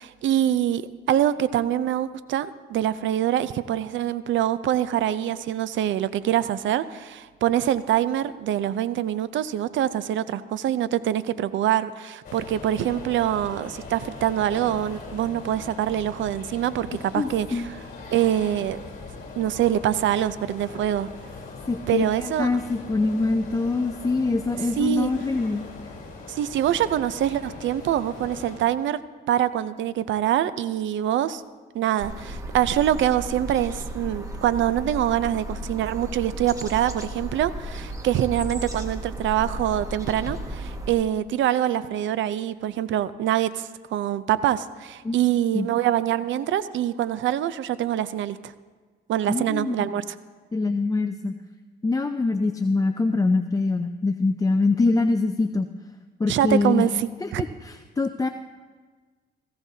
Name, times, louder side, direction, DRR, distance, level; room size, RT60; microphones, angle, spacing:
voice 1, 0.0-17.6 18.1-18.8 19.4-21.1 21.9-22.5 24.8-25.1 26.3-29.0 29.3-31.4 31.7-48.5 49.1-50.0 56.3-57.4, right 11 dB, 70° right, 15 dB, 0.6 m, -24 dB
sound 1, 12.2-28.6, left 4 dB, 45° left, 3.9 m, -41 dB
voice 2, 17.1-17.7 21.7-25.6 45.0-45.2 45.5-45.7 49.3-50.0 50.5-51.4 51.8-55.7 56.2-56.8 57.2-58.3, left 3 dB, 15° left, 7 dB, 0.5 m, -24 dB
sound 2, 32.0-40.9, right 1 dB, 15° right, 1.7 m, -34 dB
18.0 x 15.5 x 2.8 m, 1.4 s
cardioid pair, 90°, 20 cm